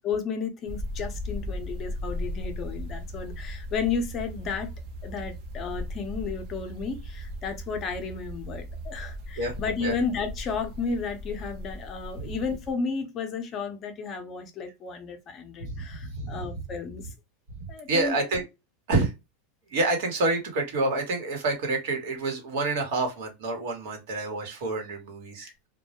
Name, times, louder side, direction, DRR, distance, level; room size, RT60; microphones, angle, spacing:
voice 1, 0.0-4.7 5.0-17.1 17.7-18.2 25.4-25.5, left 5 dB, 30° left, 0.5 m, -33 dB
sound 1, 0.7-12.7, equal, 50° right, 0.6 m, -37 dB
voice 2, 15.6-16.5 17.6-18.4 18.9-19.1 19.7-25.5, right 2 dB, 70° right, 1.0 m, -28 dB
2.1 x 2.0 x 2.8 m
supercardioid pair, 150°, 0 cm